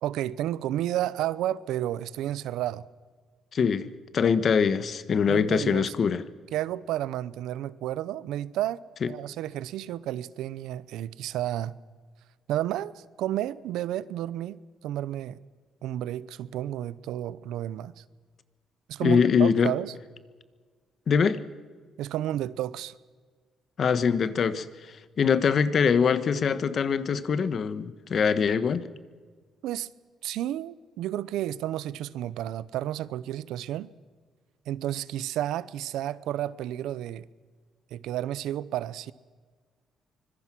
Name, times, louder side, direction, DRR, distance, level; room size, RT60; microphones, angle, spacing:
voice 1, 0.0-2.8 5.3-5.9 6.5-8.8 9.1-11.8 12.5-15.4 15.8-18.0 18.9-19.9 22.0-23.0 29.6-29.9 30.2-33.9 34.7-37.3 37.9-39.1, right 12 dB, 85° right, 0.7 m, -31 dB
voice 2, 3.5-6.2 9.0-9.1 19.0-19.7 21.1-21.4 23.8-24.7 25.2-28.9, left 6 dB, 50° left, 1.2 m, -23 dB
25.0 x 21.5 x 6.1 m
cardioid pair, 110°, 0 cm